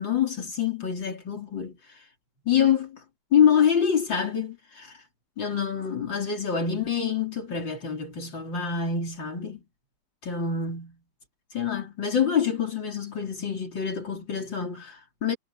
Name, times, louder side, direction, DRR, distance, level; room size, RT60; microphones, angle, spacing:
voice 1, 0.0-2.0 2.5-3.0 3.3-5.0 5.4-9.6 10.2-11.0 11.5-15.4, left 7 dB, 80° left, 4.4 m, -26 dB
omnidirectional pair, 2.0 m